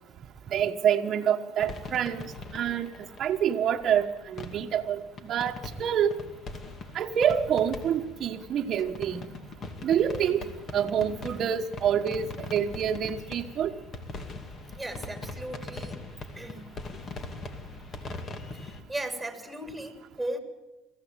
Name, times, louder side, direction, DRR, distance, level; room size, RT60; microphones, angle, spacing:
voice 1, 0.5-2.9 3.2-6.1 6.9-9.3 9.8-10.4 10.7-13.7, right 8 dB, 45° right, 2 dB, 1.3 m, -27 dB
sound 1, 1.6-18.8, left 3 dB, 35° left, 2.5 m, -41 dB
voice 2, 14.8-16.0 16.3-16.7 17.6-17.7 18.5-20.4, right 1 dB, ahead, 5 dB, 3.2 m, -37 dB
22.5 x 15.5 x 9.0 m, 1.1 s
supercardioid pair, 115°, 0 cm